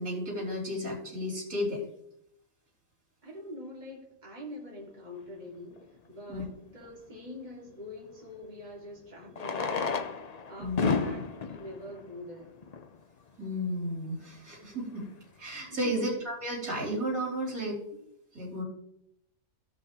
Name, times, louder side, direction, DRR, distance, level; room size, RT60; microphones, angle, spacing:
voice 1, 0.0-1.8 6.3-6.4 10.6-11.1 13.4-15.1 15.4-17.8 18.3-18.6, equal, 80° right, -4 dB, 4.2 m, -33 dB
voice 2, 3.2-10.2 10.5-12.6 15.7-16.0, left 1 dB, 30° right, -3 dB, 2.5 m, -44 dB
Fireworks, 5.8-5.9 8.1-8.2 9.3-13.0 13.8-13.9 14.1-14.2 14.4-14.5 15.0-15.2, left 5 dB, 40° left, 0.6 m, -33 dB
16.5 x 5.8 x 3.0 m, 0.74 s
omnidirectional pair, 1.4 m